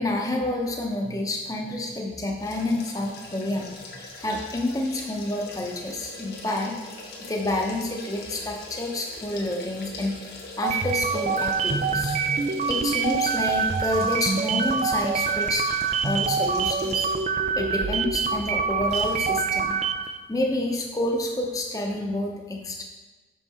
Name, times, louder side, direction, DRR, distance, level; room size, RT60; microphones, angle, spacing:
voice 1, 0.0-6.8 7.2-10.2 10.6-12.2 12.7-15.7 16.0-17.1 17.5-19.8 20.3-22.8, left 1 dB, 20° left, 0 dB, 0.8 m, -28 dB
sound 1, 2.4-17.4 17.8-17.9 18.9-19.3 19.6-19.7, left 2 dB, 65° left, 1.2 m, -42 dB
sound 2, 10.6-20.2, right 5 dB, 40° right, 0.3 m, -25 dB
6.2 x 5.6 x 4.2 m, 1.2 s
head